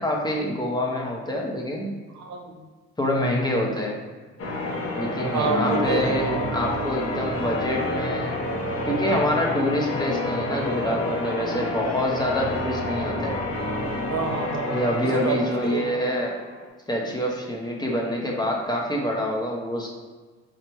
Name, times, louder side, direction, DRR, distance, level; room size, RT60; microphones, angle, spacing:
voice 1, 0.0-2.0 3.0-4.0 4.9-8.4 8.8-13.4 14.7-16.4 16.9-19.9, left 1 dB, 15° left, -1 dB, 1.0 m, -26 dB
voice 2, 2.1-2.5 5.2-6.4 14.1-15.4 15.6-15.9, right 5 dB, 65° right, 3 dB, 0.8 m, -28 dB
Church bell, 4.4-16.7, left 1 dB, 50° left, 1.0 m, -29 dB
4.4 x 2.4 x 4.6 m, 1.4 s
cardioid pair, 90°, 30 cm